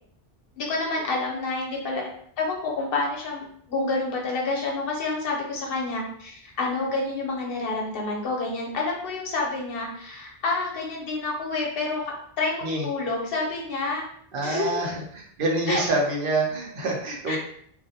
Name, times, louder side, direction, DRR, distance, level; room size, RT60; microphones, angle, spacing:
voice 1, 0.6-2.0 2.4-12.0 12.4-14.0 14.4-14.8 15.7-15.8 17.3-17.4, left 3 dB, 65° left, -1 dB, 0.8 m, -28 dB
voice 2, 14.3-17.4, right 2 dB, 60° right, -2 dB, 0.8 m, -26 dB
2.4 x 2.0 x 2.6 m, 0.65 s
omnidirectional pair, 1.1 m